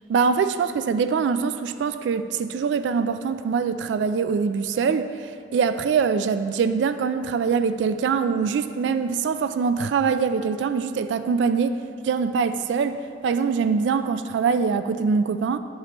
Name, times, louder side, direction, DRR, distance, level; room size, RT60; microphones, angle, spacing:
voice 1, 0.1-11.8 12.0-15.6, right 5 dB, 85° right, 10 dB, 0.3 m, -23 dB
9.3 x 7.5 x 3.0 m, 2.3 s
head